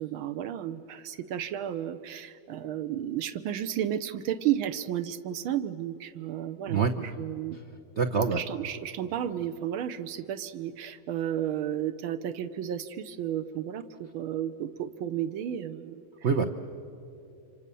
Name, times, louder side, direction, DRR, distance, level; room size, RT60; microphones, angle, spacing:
voice 1, 0.0-7.6 8.3-16.0, right 10 dB, 80° right, 10 dB, 1.7 m, -33 dB
voice 2, 8.0-8.4 16.2-16.4, right 5 dB, 60° right, 5 dB, 0.7 m, -24 dB
28.0 x 25.5 x 6.9 m, 2.6 s
omnidirectional pair, 2.3 m